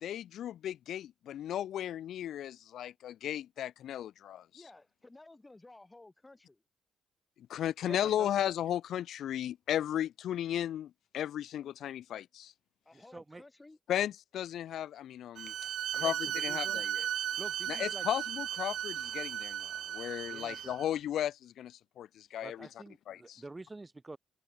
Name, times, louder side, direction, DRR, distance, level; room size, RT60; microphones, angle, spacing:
voice 1, 0.0-4.5 7.5-12.5 13.9-15.5 15.9-17.1 17.7-22.7 23.1-23.4, left 11 dB, 70° left, 0.4 m, -35 dB
voice 2, 4.5-6.6 12.9-13.8, left 2 dB, 15° left, 1.9 m, -55 dB
voice 3, 7.8-8.3 12.9-13.4 15.9-16.8 17.4-18.0 20.3-20.7 22.4-24.2, right 2 dB, 20° right, 1.0 m, -48 dB
Bowed string instrument, 15.4-20.9, right 11 dB, 70° right, 0.4 m, -36 dB
open air
cardioid pair, 90°, 0 cm